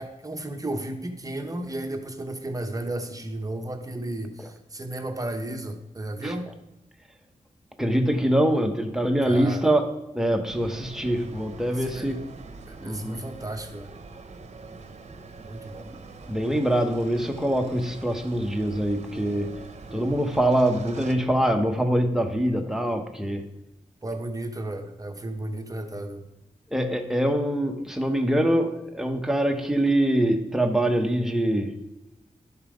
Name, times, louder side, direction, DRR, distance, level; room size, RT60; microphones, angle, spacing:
voice 1, 0.0-6.5 9.2-9.7 11.7-12.1 12.7-13.9 15.5-15.9 24.0-26.2, right 1 dB, 25° right, 5 dB, 1.1 m, -33 dB
voice 2, 7.8-9.9 10.1-12.2 12.8-13.2 15.9-16.0 16.3-19.6 19.9-23.4 26.7-31.7, right 1 dB, 5° right, 4 dB, 1.1 m, -24 dB
sound 1, 10.5-21.1, right 3 dB, 55° right, 1.0 m, -43 dB
12.0 x 5.6 x 5.1 m, 0.98 s
wide cardioid pair, 85°, 14 cm